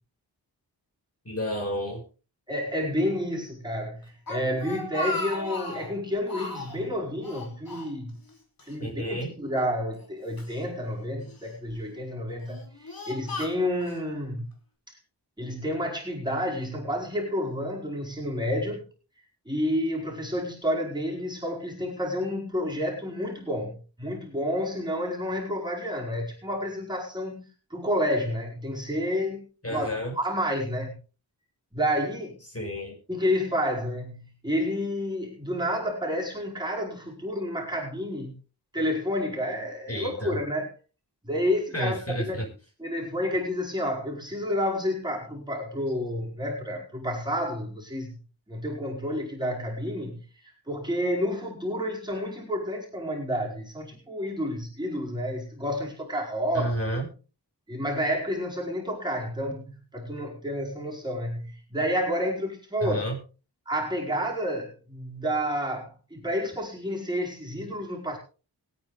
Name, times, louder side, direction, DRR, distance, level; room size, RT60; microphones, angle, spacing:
voice 1, 1.3-2.0 8.8-9.3 29.6-30.1 32.5-32.9 39.9-40.4 41.7-42.5 56.5-57.1 62.8-63.2, equal, 35° left, 1 dB, 5.7 m, -30 dB
voice 2, 2.5-8.2 8.6-14.5 14.9-15.0 15.4-18.9 19.5-27.4 27.7-29.9 30.1-31.0 31.7-32.4 33.1-38.3 38.7-40.7 41.2-42.5 42.8-48.2 48.5-56.7 57.7-63.0 63.7-68.2, equal, 10° right, -3 dB, 4.7 m, -30 dB
Speech, 4.0-5.9 6.3-6.8 7.2-8.3 8.6-8.7 9.6-10.6 11.3-11.7 12.3-14.0, left 2 dB, 55° left, 3.2 m, -36 dB
21.5 x 9.1 x 3.5 m, 0.35 s
wide cardioid pair, 65°, 41 cm